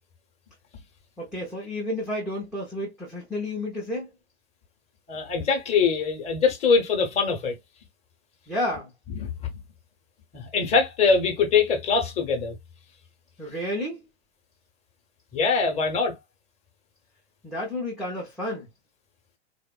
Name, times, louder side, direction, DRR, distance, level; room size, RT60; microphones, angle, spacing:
voice 1, 1.2-4.1 8.5-8.9 13.4-14.0 17.4-18.7, left 1 dB, ahead, 0.3 m, -31 dB
voice 2, 5.1-7.6 9.1-9.3 10.3-12.5 15.3-16.1, left 5 dB, 20° left, 0.7 m, -23 dB
3.4 x 2.1 x 2.2 m
figure-of-eight pair, 100°, 34 cm